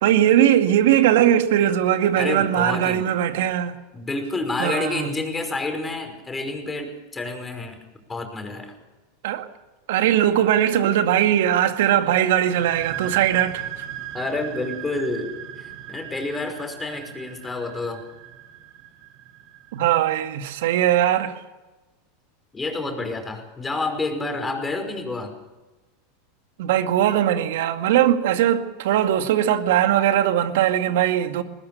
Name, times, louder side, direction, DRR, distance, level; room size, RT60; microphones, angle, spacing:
voice 1, 0.0-3.8 4.6-5.1 9.2-9.5 9.9-13.8 19.7-21.3 26.6-31.4, right 11 dB, 70° right, 2.0 m, -20 dB
voice 2, 2.2-3.0 3.9-7.8 8.1-8.7 14.1-18.0 22.5-25.3, left 2 dB, 15° left, 5.4 m, -29 dB
sound 1, 12.5-19.9, right 11 dB, 55° right, 3.1 m, -37 dB
21.0 x 20.0 x 6.8 m
hypercardioid pair, 95°, 0 cm